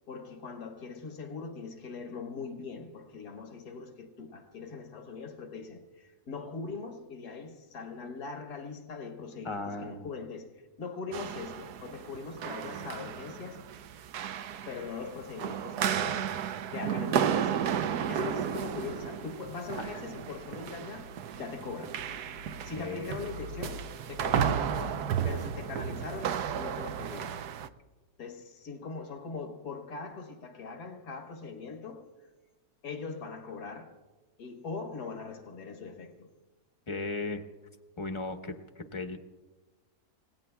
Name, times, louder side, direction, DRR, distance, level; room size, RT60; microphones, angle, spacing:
voice 1, 0.1-13.6 14.6-16.3 16.7-17.7 18.1-22.3 22.6-27.4 28.2-32.1 32.8-34.0 34.4-36.3, left 4 dB, 80° left, 2.0 m, -41 dB
voice 2, 9.4-10.0 19.8-20.0 22.8-23.3 36.9-37.4 38.0-39.2, left 3 dB, 20° left, 0.9 m, -36 dB
sound 1, 11.1-27.7, right 8 dB, 80° right, 1.2 m, -33 dB
30.0 x 17.5 x 2.3 m
omnidirectional pair, 1.7 m